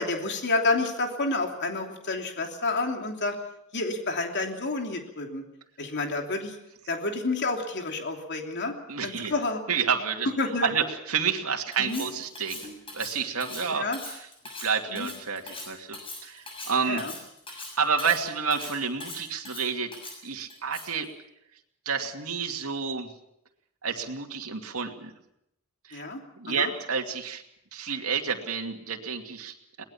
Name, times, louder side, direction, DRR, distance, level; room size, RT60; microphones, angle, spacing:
voice 1, 0.0-3.3 3.7-5.4 5.8-6.6 6.9-8.7 9.0-9.6 10.4-10.7 11.8-12.0 13.7-14.0 14.9-15.1 16.8-17.1 25.9-26.2 26.5-26.7, left 3 dB, 55° left, 3 dB, 3.1 m, -29 dB
voice 2, 8.9-9.3 9.7-10.3 10.6-12.6 12.9-14.3 14.6-17.0 17.5-19.9 20.2-21.1 21.9-23.1 23.8-25.2 25.8-26.0 26.4-27.4 27.7-29.8, right 6 dB, 90° right, 2 dB, 2.5 m, -29 dB
Cutlery silverware, 11.7-21.1, left 2 dB, 25° left, 6.8 m, -41 dB
22.5 x 19.5 x 7.1 m, 0.80 s
head